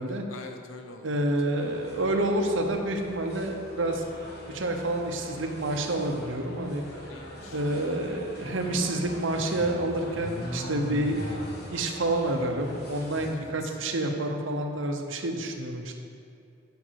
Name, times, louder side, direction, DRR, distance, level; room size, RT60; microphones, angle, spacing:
voice 1, 0.3-1.2 7.1-7.6 13.3-13.8, left 3 dB, 90° left, 5 dB, 0.8 m, -45 dB
voice 2, 1.0-4.0 4.5-6.8 7.5-11.3 11.7-15.9, right 1 dB, 70° right, 3 dB, 0.9 m, -28 dB
sound 1, 1.5-13.3, equal, 55° left, 1.6 m, -41 dB
10.5 x 5.3 x 4.7 m, 2.5 s
head